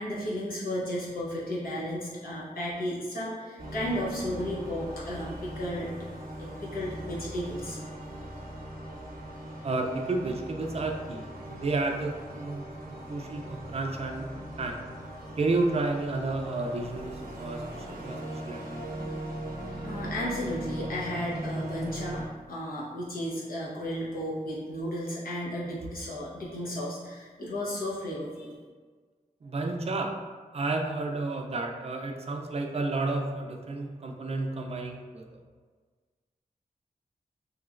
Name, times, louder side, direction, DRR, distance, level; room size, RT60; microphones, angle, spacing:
voice 1, 0.0-5.9 6.4-7.8 19.8-28.5, equal, 90° left, -6 dB, 0.9 m, -34 dB
sound 1, 3.6-22.3, right 1 dB, 90° right, 0.7 m, -39 dB
voice 2, 9.6-14.3 14.6-14.7 15.4-18.8 29.4-30.1 30.5-35.4, right 2 dB, 45° right, 2 dB, 0.4 m, -31 dB
3.1 x 3.0 x 2.4 m, 1.5 s
wide cardioid pair, 100°, 14 cm